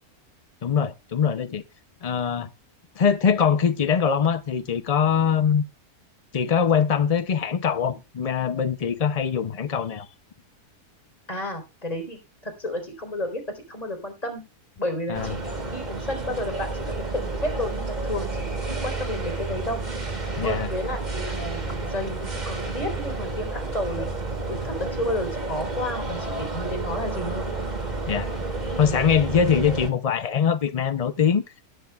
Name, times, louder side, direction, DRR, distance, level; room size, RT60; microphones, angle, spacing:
voice 1, 0.6-1.6 2.0-2.5 3.0-5.6 6.3-10.1 15.1-15.4 20.4-20.7 28.1-28.3 28.7-31.4, left 7 dB, 60° left, 0.4 m, -22 dB
voice 2, 11.3-14.4 14.8-15.4 15.7-19.8 20.4-24.1 24.5-27.5, left 1 dB, 25° left, 4.1 m, -32 dB
sound 1, 15.1-29.9, right 3 dB, 30° right, 2.0 m, -30 dB
18.0 x 11.0 x 2.3 m
omnidirectional pair, 1.6 m